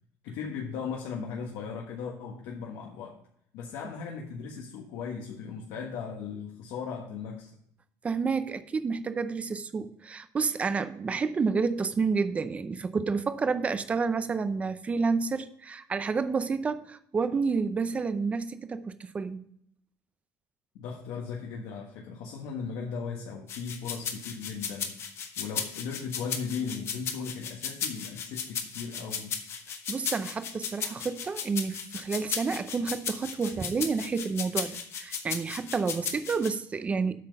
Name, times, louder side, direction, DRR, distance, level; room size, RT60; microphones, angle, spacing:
voice 1, 0.2-3.2 3.5-7.5 20.7-25.0 25.4-29.3, left 6 dB, 80° left, 1.4 m, -37 dB
voice 2, 8.0-19.4 29.9-37.1, right 4 dB, 20° right, 0.5 m, -29 dB
sound 1, 23.5-36.5, left 7 dB, 35° left, 1.0 m, -35 dB
8.3 x 5.9 x 5.2 m
cardioid pair, 170°, 7 cm